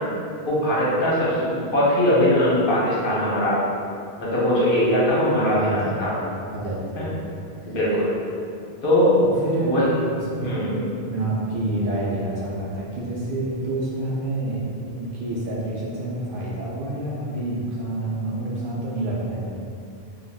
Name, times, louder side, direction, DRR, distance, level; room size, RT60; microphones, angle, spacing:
voice 1, 0.5-3.6 4.2-6.1 7.0-7.1 7.7-8.1 8.8-9.1 9.6-9.9 10.3-10.7, equal, 60° left, -7 dB, 0.9 m, -21 dB
voice 2, 5.5-7.4 7.7-7.8 9.2-9.8 10.1-10.8 11.1-19.5, right 1 dB, 60° right, -5 dB, 0.7 m, -28 dB
2.4 x 2.3 x 3.3 m, 2.4 s
omnidirectional pair, 1.1 m